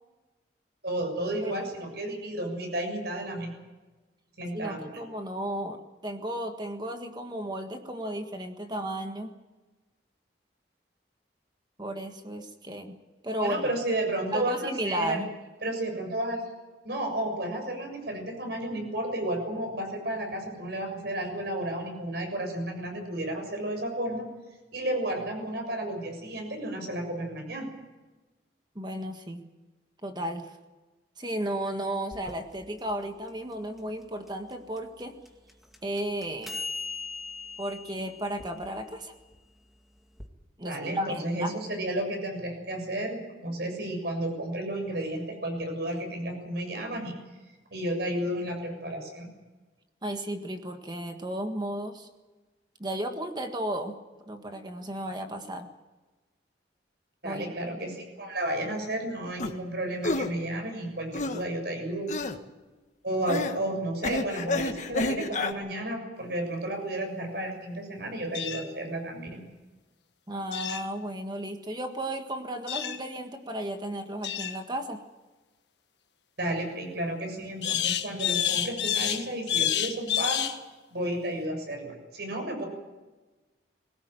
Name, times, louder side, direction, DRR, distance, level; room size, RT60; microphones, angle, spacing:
voice 1, 0.8-3.5 4.4-5.0 13.4-15.3 15.6-16.4 16.8-24.3 24.7-27.7 40.6-47.2 47.7-49.3 57.2-62.1 63.0-69.4 76.4-80.4 80.9-82.6, right 1 dB, 60° right, 4 dB, 7.0 m, -32 dB
voice 2, 4.5-9.3 11.8-13.0 13.2-13.6 14.3-15.3 28.7-29.5 30.0-30.6 31.2-35.2 35.8-36.6 37.6-39.1 40.6-41.5 50.0-52.1 52.8-54.0 54.3-55.7 57.2-57.8 70.3-75.0, right 1 dB, 25° right, 6 dB, 1.6 m, -34 dB
sound 1, 32.1-40.3, left 4 dB, ahead, 2.1 m, -42 dB
sound 2, 59.4-59.5 60.0-60.3 61.1-61.4 62.1-62.4 63.3-63.6 64.0-65.5, left 2 dB, 40° left, 1.5 m, -29 dB
sound 3, 68.3-68.6 70.5-70.8 72.7-73.0 74.2-74.6 77.6-80.6, left 10 dB, 70° left, 1.6 m, -28 dB
22.0 x 18.0 x 9.1 m, 1.2 s
head